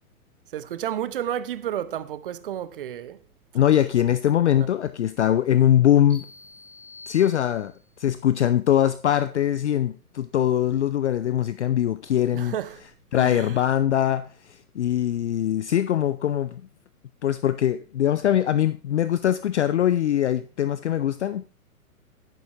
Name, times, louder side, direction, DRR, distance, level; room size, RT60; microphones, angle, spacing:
voice 1, 0.5-3.2 4.5-4.7 12.3-12.8 13.2-13.6, right 10 dB, 40° right, 0.6 m, -31 dB
voice 2, 3.5-6.2 7.1-7.7 8.0-12.5 13.1-16.6 17.2-21.5, left 11 dB, 50° left, 0.5 m, -22 dB
sound 1, 6.1-8.0, left 2 dB, 10° right, 4.4 m, -47 dB
11.0 x 9.1 x 2.9 m
figure-of-eight pair, 115°, 44 cm